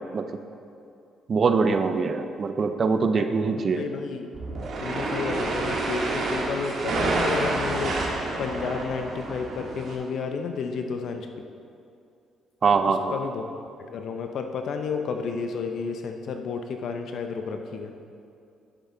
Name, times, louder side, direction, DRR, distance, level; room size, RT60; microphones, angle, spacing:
voice 1, 1.3-3.8 12.6-13.1, right 4 dB, 45° right, 8 dB, 0.6 m, -23 dB
voice 2, 3.1-4.3 4.8-8.0 8.4-11.3 13.1-13.4 13.8-17.9, left 5 dB, 65° left, 5 dB, 0.7 m, -31 dB
sound 1, 4.3-9.9, right 2 dB, 60° right, 1.7 m, -28 dB
10.5 x 7.3 x 3.9 m, 2.5 s
cardioid pair, 85°, 0 cm